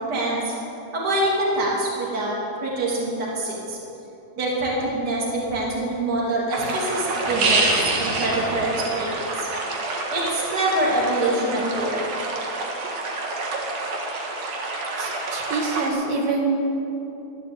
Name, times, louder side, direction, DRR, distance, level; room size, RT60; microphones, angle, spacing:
voice 1, 0.1-0.5 0.9-2.3 2.6-3.8 4.4-9.5 10.1-12.0, right 1 dB, 30° right, -4 dB, 3.1 m, -25 dB
sound 1, 6.5-15.9, right 3 dB, 55° right, 2.5 m, -27 dB
voice 2, 15.0-16.5, right 3 dB, 75° right, -1 dB, 3.5 m, -26 dB
12.5 x 11.5 x 8.4 m, 2.9 s
omnidirectional pair, 4.3 m